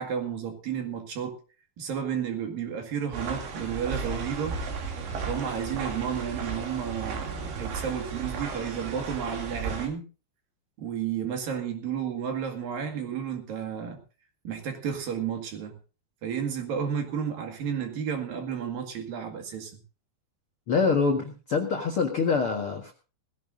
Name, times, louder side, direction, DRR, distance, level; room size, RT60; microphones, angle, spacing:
voice 1, 0.0-1.4 1.8-4.6 5.3-10.0 10.8-14.0 14.4-15.8 16.2-19.7, right 8 dB, 60° right, 4 dB, 3.4 m, -32 dB
sound 1, 3.1-9.9, right 5 dB, 85° right, 5.0 m, -34 dB
voice 2, 20.7-22.9, left 5 dB, 75° left, 2 dB, 1.2 m, -25 dB
19.5 x 15.5 x 2.6 m, 0.34 s
omnidirectional pair, 5.1 m